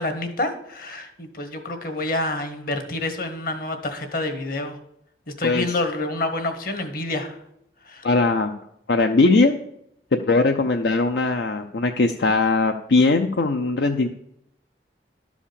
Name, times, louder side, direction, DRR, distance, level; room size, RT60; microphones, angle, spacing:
voice 1, 0.0-4.8 5.4-7.4 7.8-8.0, left 2 dB, 55° left, 7 dB, 1.4 m, -28 dB
voice 2, 8.0-8.5 8.9-9.5 10.1-14.1, left 3 dB, 75° left, 5 dB, 0.6 m, -20 dB
12.0 x 5.0 x 6.9 m, 0.77 s
head